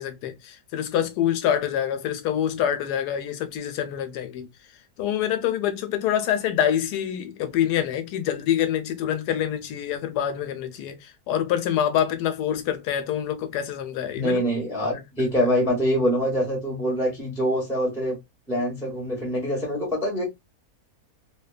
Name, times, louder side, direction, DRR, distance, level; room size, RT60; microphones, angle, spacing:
voice 1, 0.0-4.5 5.0-14.4 14.8-15.3, left 10 dB, 90° left, 1.1 m, -26 dB
voice 2, 14.1-18.2 18.5-20.3, equal, 5° right, 0.7 m, -25 dB
2.8 x 2.2 x 2.3 m
omnidirectional pair, 1.7 m